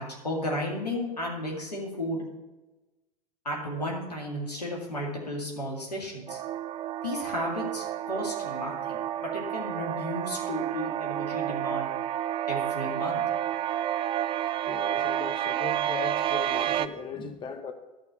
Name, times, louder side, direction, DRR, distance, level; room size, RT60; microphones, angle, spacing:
voice 1, 0.0-2.2 3.4-6.4 7.0-11.9 12.5-13.2, left 1 dB, 90° left, 2.3 m, -33 dB
sound 1, 6.3-16.9, right 11 dB, 25° right, 0.4 m, -30 dB
voice 2, 14.7-17.7, left 5 dB, 25° left, 0.9 m, -38 dB
11.5 x 4.7 x 6.9 m
figure-of-eight pair, 80°, 20 cm